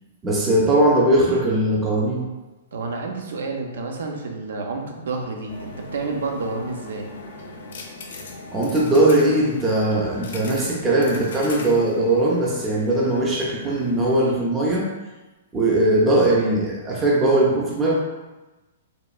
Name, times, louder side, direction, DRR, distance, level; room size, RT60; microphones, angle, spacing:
voice 1, 0.2-2.2 8.5-14.9 15.5-17.9, right 1 dB, 20° right, -4 dB, 0.5 m, -20 dB
voice 2, 2.7-7.1, right 3 dB, 75° right, 2 dB, 0.5 m, -29 dB
sound 1, 5.5-14.4, left 2 dB, 70° left, 0.4 m, -38 dB
3.0 x 2.2 x 2.4 m, 1.1 s
hypercardioid pair, 125°, 0 cm